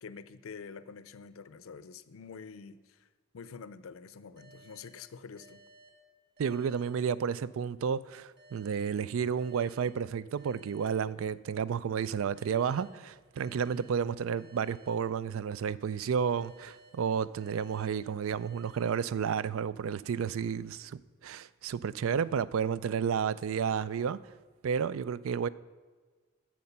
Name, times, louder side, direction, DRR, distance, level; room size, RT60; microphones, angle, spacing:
voice 1, 0.0-3.1 3.3-5.6, left 5 dB, 80° left, 0.5 m, -47 dB
sound 1, 4.4-7.7 8.4-11.7 12.4-15.7 16.4-19.7, right 2 dB, 50° right, 2.0 m, -60 dB
voice 2, 6.4-24.2 24.6-25.5, right 7 dB, 80° right, 0.4 m, -31 dB
10.5 x 7.5 x 5.7 m
head